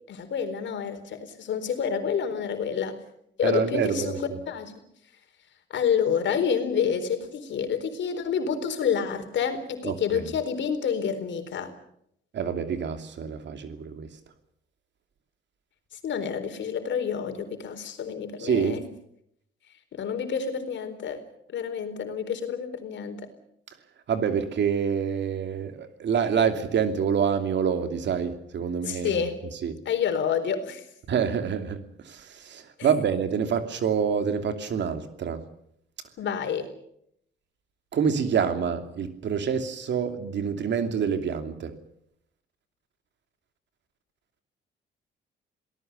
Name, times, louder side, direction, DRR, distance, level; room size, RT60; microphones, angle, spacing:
voice 1, 0.1-3.0 3.4-4.7 5.7-11.7 16.0-18.8 19.9-21.2 21.5-23.2 28.8-29.4 29.9-30.8 32.8-32.9 36.2-36.7, left 7 dB, 70° left, 4.2 m, -28 dB
voice 2, 3.4-4.2 9.8-10.3 12.3-14.1 18.4-18.8 24.1-29.3 29.6-29.7 31.1-35.4 37.9-41.7, right 7 dB, 65° right, 2.8 m, -27 dB
27.5 x 18.5 x 6.8 m
cardioid pair, 90°, 20 cm